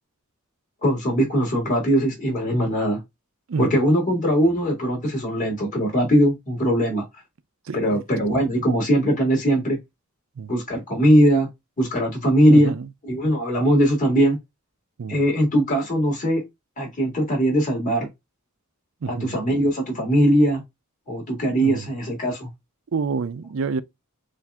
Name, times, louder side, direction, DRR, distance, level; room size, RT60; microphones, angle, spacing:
voice 1, 0.8-3.0 3.6-7.0 7.7-9.8 10.5-11.5 11.8-12.7 13.0-14.4 15.1-16.4 16.8-18.1 19.1-20.6 21.1-22.5, equal, 35° left, 2.0 m, -20 dB
voice 2, 7.7-8.0 10.4-10.5 12.5-12.8 15.0-15.2 19.0-19.3 21.6-21.8 22.9-23.8, right 5 dB, 60° right, 0.4 m, -28 dB
7.0 x 2.6 x 2.3 m
head